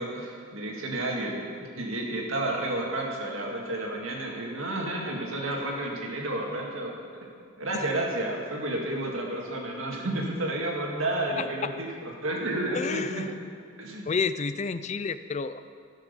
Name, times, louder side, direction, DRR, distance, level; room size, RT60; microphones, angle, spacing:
voice 1, 0.0-7.0 7.2-7.3 7.6-11.9 12.2-13.2 13.8-14.1, right 1 dB, 75° right, -1 dB, 2.0 m, -31 dB
voice 2, 12.7-13.3 14.1-15.7, left 5 dB, 30° left, 13 dB, 0.3 m, -30 dB
15.5 x 6.3 x 6.8 m, 2.2 s
head